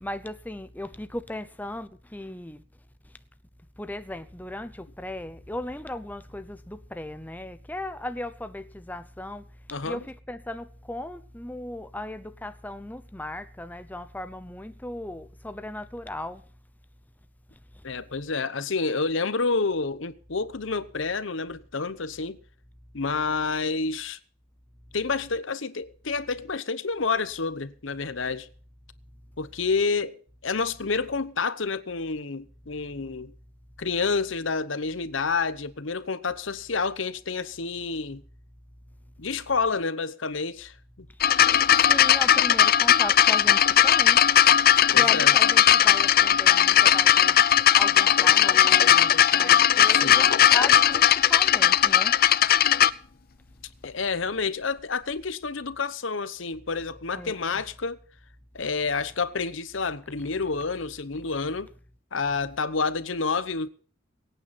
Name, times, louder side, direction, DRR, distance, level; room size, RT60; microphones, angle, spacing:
voice 1, 0.0-2.6 3.8-9.4 9.8-16.4 41.6-44.2 44.9-47.4 47.7-52.2 57.1-57.6, left 1 dB, 10° left, 0.8 m, -37 dB
voice 2, 9.7-10.0 17.8-22.4 22.9-24.2 24.9-28.5 29.4-33.3 33.8-38.2 39.2-41.1 44.9-45.4 49.9-50.3 53.8-58.0 58.5-61.7 62.1-63.7, left 4 dB, 70° left, 0.9 m, -29 dB
sound 1, 41.2-52.9 53.8-53.9, left 10 dB, 50° left, 0.6 m, -18 dB
23.5 x 9.2 x 4.2 m
head